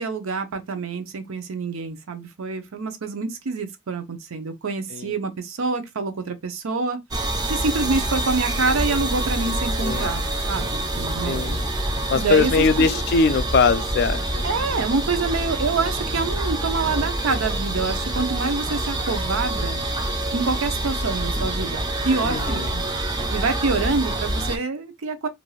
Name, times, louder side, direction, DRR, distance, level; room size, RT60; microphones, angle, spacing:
voice 1, 0.0-7.0 7.5-10.2 10.5-11.6 12.1-13.0 14.4-19.8 20.3-22.8 23.3-25.3, right 4 dB, 90° right, 0.6 m, -26 dB
sound 1, 7.1-24.6, right 1 dB, 20° right, 0.4 m, -26 dB
voice 2, 9.8-10.2 11.2-11.6 12.1-14.4 22.2-22.7, left 4 dB, 50° left, 0.3 m, -21 dB
2.5 x 2.3 x 3.1 m
head